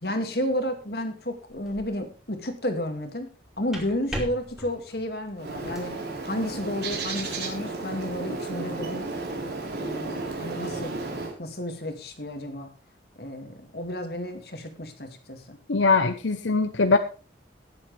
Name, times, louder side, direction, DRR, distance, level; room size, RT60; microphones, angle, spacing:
voice 1, 0.0-3.3 3.6-9.1 9.8-10.9 11.4-12.7 13.2-15.6, left 1 dB, 55° left, 5 dB, 2.3 m, -32 dB
sound 1, 1.5-2.1 3.4-6.0, equal, 5° right, 2.7 m, -39 dB
Bird, 5.4-11.3, right 3 dB, 65° right, 4.1 m, -33 dB
voice 2, 15.7-17.0, left 3 dB, 90° left, 9 dB, 0.8 m, -21 dB
18.5 x 7.9 x 3.4 m, 0.34 s
head